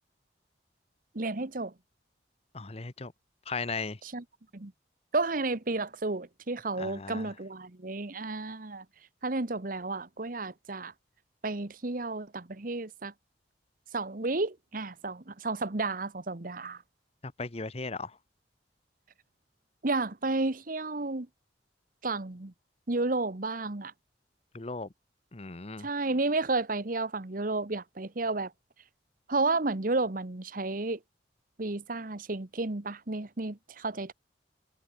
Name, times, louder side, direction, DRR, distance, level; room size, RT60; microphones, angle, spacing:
voice 1, 1.1-1.7 4.1-4.2 4.5-4.7 5.1-8.8 9.2-10.9 11.4-13.1 13.9-16.8 19.8-21.3 22.0-22.5 22.9-23.9 25.8-28.5 29.3-31.0 31.6-34.1, right 3 dB, 50° right, 1.2 m, -32 dB
voice 2, 2.5-3.1 3.5-4.0 6.8-7.3 17.2-18.2 24.5-24.9 25.3-25.9, left 4 dB, 35° left, 1.0 m, -37 dB
head